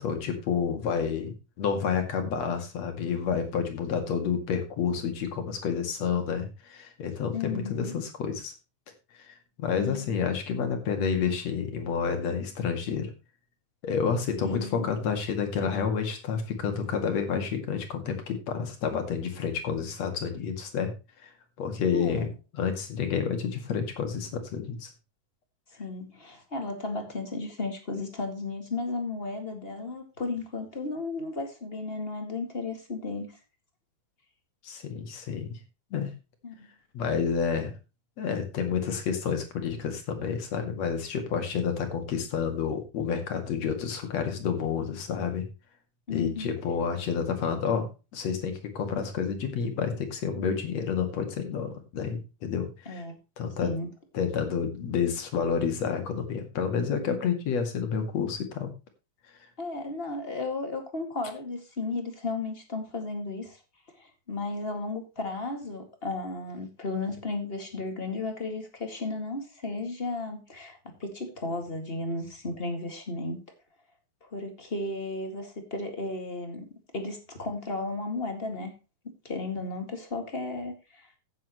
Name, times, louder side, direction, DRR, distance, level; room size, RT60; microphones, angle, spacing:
voice 1, 0.0-8.5 9.2-13.1 13.8-20.9 21.2-21.3 21.6-24.9 34.6-35.6 35.9-36.1 36.9-37.7 38.2-45.5 46.1-53.0 53.4-53.7 54.1-58.7, left 6 dB, 55° left, 6 dB, 3.0 m, -29 dB
voice 2, 7.3-8.0 9.7-10.1 14.4-14.9 21.9-22.2 25.7-33.3 36.4-36.7 46.1-46.5 52.8-53.2 53.6-53.9 59.6-63.6 64.0-73.4 74.2-76.6 76.9-78.7 79.0-81.1, left 3 dB, 20° left, 5 dB, 1.6 m, -34 dB
15.5 x 7.5 x 3.1 m, 0.29 s
omnidirectional pair, 3.9 m